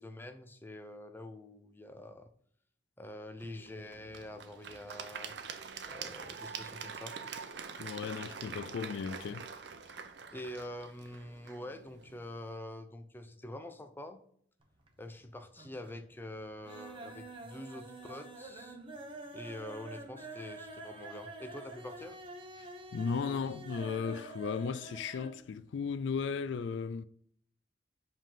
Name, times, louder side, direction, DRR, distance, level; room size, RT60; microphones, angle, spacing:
voice 1, 0.0-2.3 3.0-5.3 5.9-7.2 10.3-14.2 15.0-18.8 19.3-22.2, left 1 dB, 10° left, 0.6 m, -46 dB
Applause / Crowd, 3.4-12.5, right 6 dB, 70° right, 0.7 m, -45 dB
voice 2, 7.8-9.5 22.6-27.0, left 5 dB, 80° left, 0.3 m, -36 dB
sound 1, 14.6-15.2 15.5-16.0 16.4-25.4 25.7-25.8 26.1-26.2, right 2 dB, 30° right, 1.0 m, -47 dB
5.1 x 3.7 x 5.6 m
head